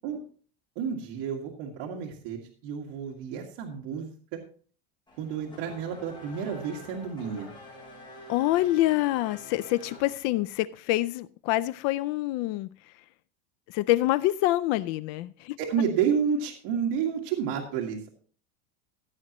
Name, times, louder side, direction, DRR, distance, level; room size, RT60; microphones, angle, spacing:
voice 1, 0.8-4.4 5.2-7.5 15.6-18.1, right 7 dB, 60° right, 2.0 m, -30 dB
Race car auto racing / Accelerating revving vroom, 5.1-10.6, left 1 dB, 15° left, 6.9 m, -47 dB
voice 2, 8.3-12.7 13.7-15.6, left 16 dB, 50° left, 0.4 m, -26 dB
16.0 x 8.6 x 3.0 m
supercardioid pair, 155°, 32 cm